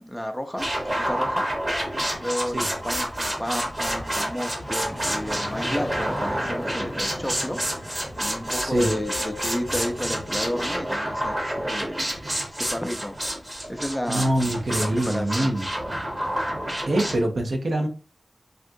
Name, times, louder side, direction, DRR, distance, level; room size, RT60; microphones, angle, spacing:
voice 1, 0.0-1.5 2.1-7.6 8.2-13.2 13.7-14.3 14.7-15.5, equal, 5° left, 5 dB, 0.5 m, -32 dB
sound 1, 0.6-17.2, right 1 dB, 40° right, 1.2 m, -29 dB
sound 2, 3.1-9.1, left 1 dB, 30° left, 0.9 m, -39 dB
sound 3, 8.8-11.0, left 6 dB, 55° left, 0.5 m, -41 dB
voice 2, 14.1-15.7 16.9-17.9, right 1 dB, 80° right, 3 dB, 0.6 m, -24 dB
3.6 x 2.3 x 2.6 m, 0.36 s
wide cardioid pair, 70°, 0 cm